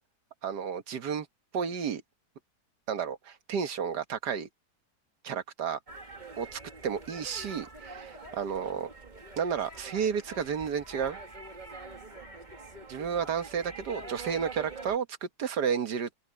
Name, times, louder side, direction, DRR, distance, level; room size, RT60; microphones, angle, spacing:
voice 1, 0.4-1.3 1.5-2.0 2.9-4.5 5.2-5.8 6.4-8.9 9.4-11.2 12.9-16.3, right 7 dB, 85° right, 1.9 m, -32 dB
sound 1, 5.9-15.0, right 3 dB, 25° right, 2.1 m, -45 dB
open air
omnidirectional pair, 1.7 m